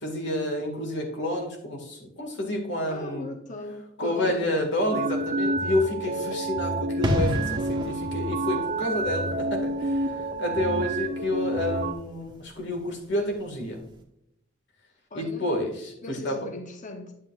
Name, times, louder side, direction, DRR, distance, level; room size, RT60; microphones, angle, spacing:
voice 1, 0.0-3.3 4.0-10.1 10.4-13.8 15.1-16.4, left 1 dB, 65° left, 1.8 m, -29 dB
voice 2, 2.9-4.5 15.1-15.5 16.0-17.1, left 2 dB, 40° left, 0.8 m, -38 dB
sound 1, 4.9-11.9, right 2 dB, 45° right, 0.6 m, -29 dB
sound 2, 7.0-13.5 13.8-14.0, left 1 dB, 25° right, 1.2 m, -33 dB
9.5 x 7.8 x 2.4 m
head